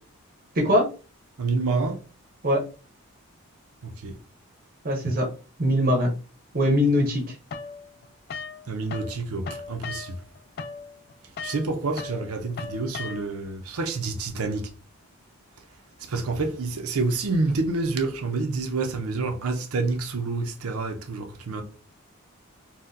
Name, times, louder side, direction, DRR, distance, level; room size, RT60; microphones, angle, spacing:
voice 1, 1.4-2.0 3.8-4.2 8.7-10.2 11.4-14.7 16.0-21.6, right 3 dB, 80° right, 0.6 m, -28 dB
voice 2, 4.8-5.3 5.6-6.1 6.5-7.3, equal, 40° right, 0.7 m, -21 dB
sound 1, 7.5-9.2 9.4-13.5, left 4 dB, 45° left, 0.3 m, -37 dB
4.0 x 2.2 x 2.5 m
head